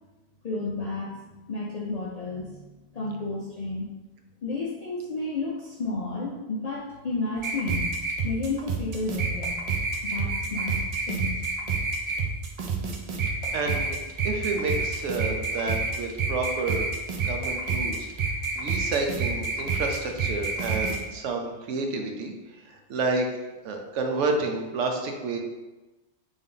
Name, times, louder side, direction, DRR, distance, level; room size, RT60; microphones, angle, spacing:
voice 1, 0.4-3.9 4.4-7.9 8.2-9.6 10.0-11.4, left 3 dB, 60° left, -4 dB, 0.4 m, -32 dB
sound 1, 7.4-21.0, right 4 dB, 60° right, 0.4 m, -28 dB
voice 2, 13.5-14.0 14.2-16.9 17.2-18.1 18.6-22.3 22.6-23.3 23.6-25.4, right 3 dB, 80° right, 3 dB, 0.9 m, -29 dB
3.5 x 2.6 x 3.7 m, 1.1 s
omnidirectional pair, 1.2 m